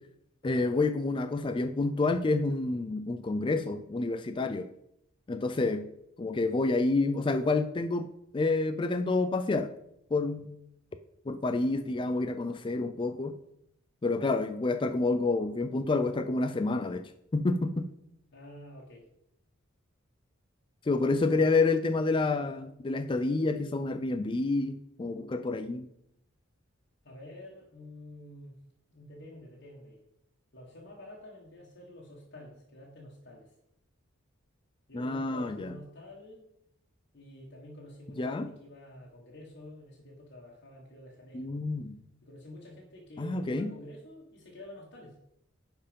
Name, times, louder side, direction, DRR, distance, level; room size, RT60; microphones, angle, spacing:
voice 1, 0.4-4.7 5.3-5.8 6.2-9.7 10.1-10.5 11.3-13.3 14.0-17.9 20.8-25.9 34.9-35.7 38.2-38.5 41.3-42.0 43.2-43.7, left 3 dB, 25° left, 8 dB, 0.4 m, -28 dB
voice 2, 18.3-19.1 27.0-28.5 28.9-30.0 30.5-33.5 34.9-36.5 37.1-41.5 42.2-45.2, left 1 dB, 60° left, -4 dB, 1.7 m, -48 dB
10.5 x 4.5 x 5.2 m, 0.77 s
head